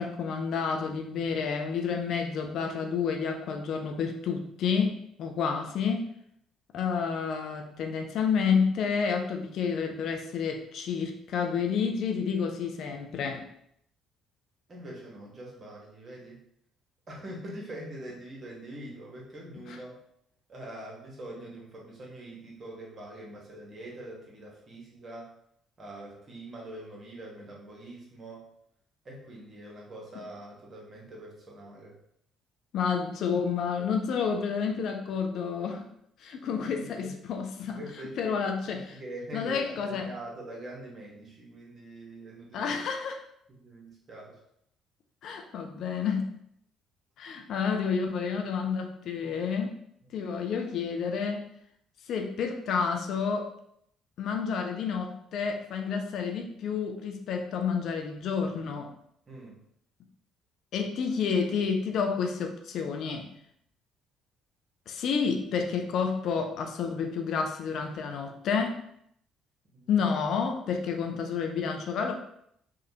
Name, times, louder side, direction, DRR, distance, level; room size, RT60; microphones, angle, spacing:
voice 1, 0.0-6.1 6.7-13.5 19.7-19.8 32.7-35.9 36.2-37.8 38.2-39.0 39.3-40.1 42.5-43.2 45.2-46.3 47.2-49.7 50.1-51.5 52.1-53.5 54.2-58.9 60.7-63.3 64.9-68.8 69.9-72.1, left 6 dB, 60° left, 4 dB, 0.3 m, -30 dB
voice 2, 14.7-16.4 17.1-19.9 20.5-25.3 25.8-28.5 29.0-32.0 36.5-37.1 37.8-38.4 38.7-42.7 43.5-44.4 59.3-59.6 69.7-70.0, right 1 dB, 35° right, -3 dB, 1.1 m, -44 dB
3.2 x 2.4 x 2.8 m, 0.71 s
figure-of-eight pair, 50°, 0 cm